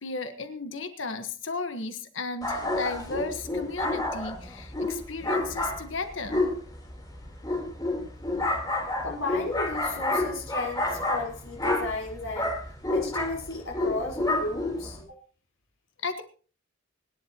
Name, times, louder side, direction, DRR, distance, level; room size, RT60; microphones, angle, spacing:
voice 1, 0.0-6.4 16.0-16.2, left 3 dB, 65° left, 8 dB, 1.4 m, -34 dB
sound 1, 2.4-15.0, left 2 dB, 20° left, 3.8 m, -29 dB
voice 2, 9.0-12.6 12.9-15.2, left 2 dB, 85° left, -3 dB, 4.6 m, -34 dB
25.0 x 11.0 x 3.0 m, 0.39 s
head